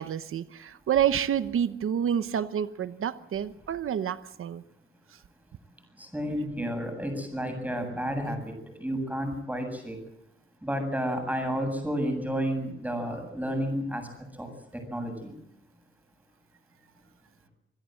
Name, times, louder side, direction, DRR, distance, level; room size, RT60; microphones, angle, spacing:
voice 1, 0.0-4.6 6.6-6.7, right 9 dB, 80° right, 12 dB, 1.0 m, -28 dB
voice 2, 6.0-10.0 10.6-14.1 14.4-15.3, equal, 5° right, 5 dB, 7.8 m, -31 dB
26.5 x 17.0 x 7.8 m, 0.80 s
wide cardioid pair, 105°, 21 cm